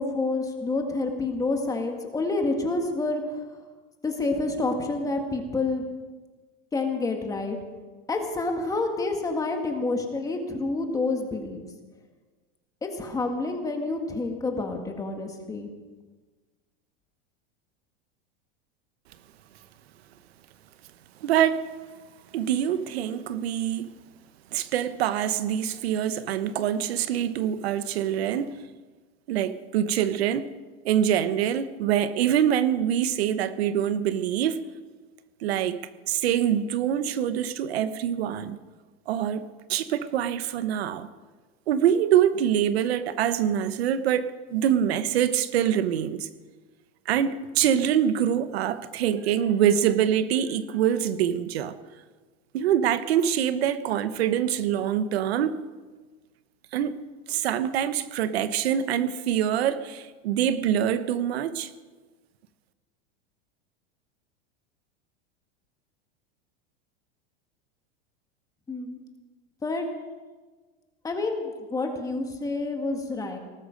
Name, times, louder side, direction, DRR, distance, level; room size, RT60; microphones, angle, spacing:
voice 1, 0.0-3.4 4.0-5.8 6.7-7.6 8.1-11.6 12.8-15.7 68.7-69.0 69.6-69.9 71.0-73.4, left 3 dB, 10° left, 1.7 m, -28 dB
voice 2, 21.2-21.6 22.3-23.9 24.5-28.6 29.3-30.5 30.8-34.6 35.4-35.8 36.1-38.6 39.1-41.1 41.7-46.3 47.1-51.7 52.5-55.6 56.7-57.0 57.3-61.7, right 9 dB, 90° right, 1.1 m, -25 dB
19.0 x 13.0 x 5.2 m
supercardioid pair, 155°, 30 cm